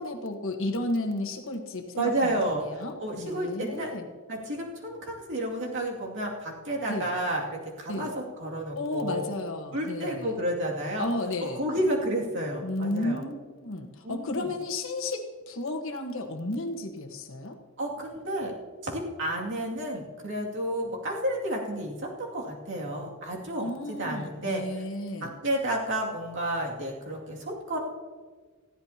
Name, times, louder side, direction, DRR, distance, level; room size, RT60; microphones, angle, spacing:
voice 1, 0.0-4.1 6.9-7.1 7.9-8.1 8.7-10.3 11.0-11.6 12.6-17.6 23.6-25.3, left 2 dB, 60° left, 4 dB, 1.3 m, -33 dB
voice 2, 2.0-3.9 4.3-9.2 9.7-11.1 11.4-13.2 14.0-14.5 17.8-18.5 18.8-24.6 25.2-27.8, right 1 dB, 60° right, -2 dB, 2.4 m, -31 dB
19.5 x 14.0 x 2.9 m, 1.5 s
head